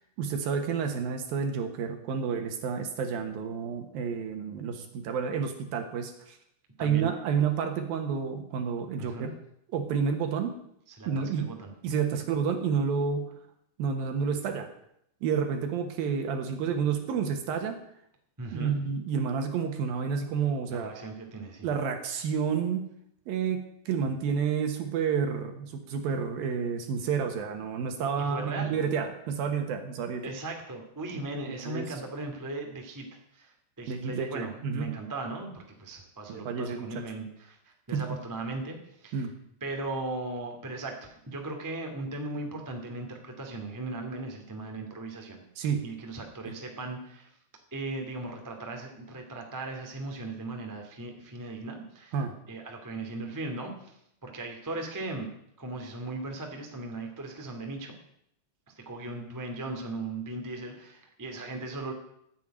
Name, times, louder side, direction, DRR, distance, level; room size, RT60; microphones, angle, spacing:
voice 1, 0.0-6.4 6.8-9.3 9.7-10.6 11.1-11.5 11.8-13.3 13.8-14.7 15.2-17.8 18.5-21.1 21.6-22.9 23.3-23.6 23.9-30.2 31.4-31.9 33.9-34.9 36.3-36.9 37.9-38.1 39.1-39.3 45.6-45.9 52.1-52.3, right 6 dB, 65° right, 6 dB, 2.7 m, -30 dB
voice 2, 6.8-7.1 9.0-9.3 11.0-11.7 18.4-18.8 20.7-21.7 28.2-28.8 30.2-33.1 33.3-37.6 37.9-39.3 39.6-45.4 45.8-47.3 47.7-52.1 52.5-55.3 55.6-57.9 58.7-61.9, right 2 dB, 20° right, 2 dB, 0.4 m, -38 dB
15.0 x 7.7 x 9.1 m, 0.75 s
omnidirectional pair, 5.2 m